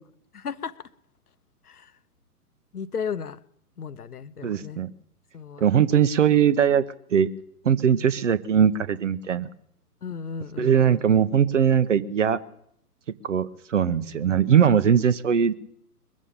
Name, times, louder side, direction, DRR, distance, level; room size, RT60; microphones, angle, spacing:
voice 1, 0.3-0.9 1.6-1.9 2.7-3.4 3.8-4.8 5.3-5.6 7.9-8.1 10.0-11.1 14.0-14.5, left 6 dB, 70° left, 15 dB, 0.9 m, -35 dB
voice 2, 4.4-4.9 5.6-6.8 7.1-7.3 7.6-9.5 10.6-12.4 13.2-15.5, right 8 dB, 50° right, 15 dB, 0.8 m, -20 dB
22.0 x 7.4 x 7.0 m, 0.71 s
figure-of-eight pair, 125°, 47 cm